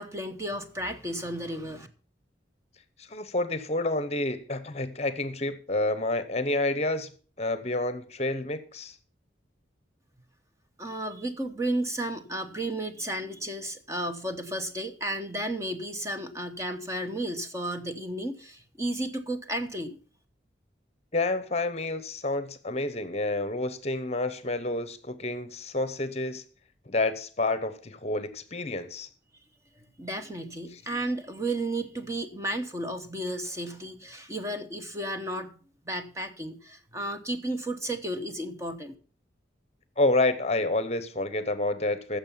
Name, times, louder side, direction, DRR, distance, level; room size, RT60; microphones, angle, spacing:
voice 1, 0.0-1.9 10.8-20.0 29.8-35.5 35.8-38.9, right 1 dB, 15° right, 1.0 m, -33 dB
voice 2, 3.0-7.1 7.4-8.9 21.1-26.4 26.9-29.1 30.7-30.8 40.0-42.2, left 2 dB, 35° left, 0.9 m, -29 dB
15.0 x 7.0 x 5.6 m
head